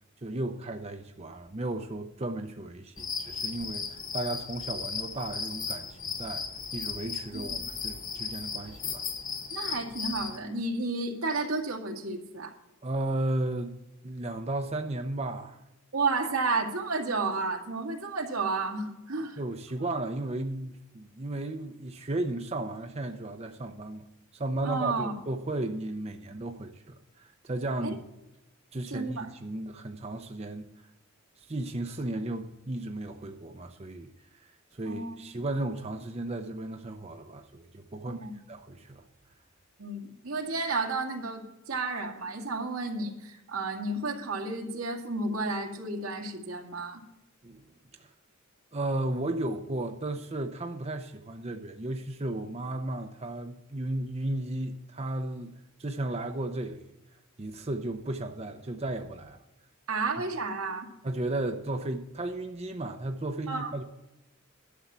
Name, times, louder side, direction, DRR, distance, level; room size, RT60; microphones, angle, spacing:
voice 1, 0.2-9.0 12.8-13.8 14.0-15.6 19.4-24.0 24.3-28.0 28.7-30.7 31.4-34.1 34.8-38.2 38.5-39.0 47.4-47.6 48.0-48.1 48.7-56.9 57.4-59.4 61.0-63.8, right 2 dB, 30° right, 0.7 m, -34 dB
sound 1, 3.0-10.4, left 6 dB, 40° left, 1.7 m, -36 dB
voice 2, 9.5-12.5 15.9-19.4 24.6-25.1 27.8-27.9 28.9-29.3 34.9-35.1 38.0-38.3 39.8-47.0 59.9-60.9 63.5-63.7, right 3 dB, 90° right, 2.2 m, -32 dB
12.0 x 7.0 x 7.4 m
head